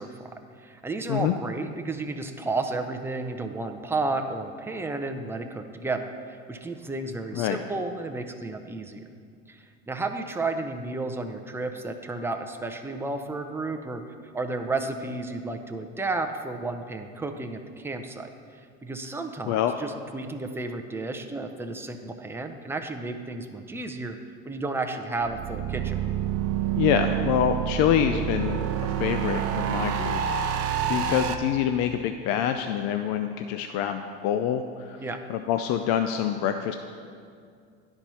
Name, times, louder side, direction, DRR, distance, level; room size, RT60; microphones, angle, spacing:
voice 1, 0.0-9.0 9.5-24.2 24.4-26.0 35.0-35.2, right 3 dB, 10° right, 5 dB, 0.5 m, -32 dB
sound 1, 25.2-31.3, right 9 dB, 50° right, 0.7 m, -28 dB
voice 2, 26.7-30.6 30.9-35.0 35.3-36.7, left 9 dB, 60° left, 7 dB, 0.5 m, -26 dB
10.5 x 4.4 x 5.5 m, 2.2 s
supercardioid pair, 110°, 31 cm